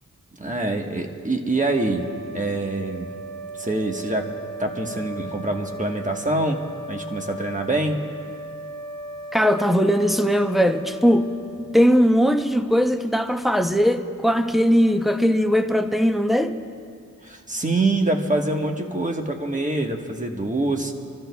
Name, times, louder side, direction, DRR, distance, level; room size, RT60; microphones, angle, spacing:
voice 1, 0.4-2.0 2.3-3.1 3.6-4.3 4.6-6.6 6.9-8.0 17.2-20.9, right 2 dB, 25° right, 2 dB, 1.3 m, -25 dB
sound 1, 1.5-12.1, right 1 dB, 90° right, 3.5 m, -37 dB
voice 2, 9.3-11.3 11.7-16.5, equal, ahead, 6 dB, 0.7 m, -19 dB
29.0 x 13.5 x 2.3 m, 2.2 s
wide cardioid pair, 65°, 31 cm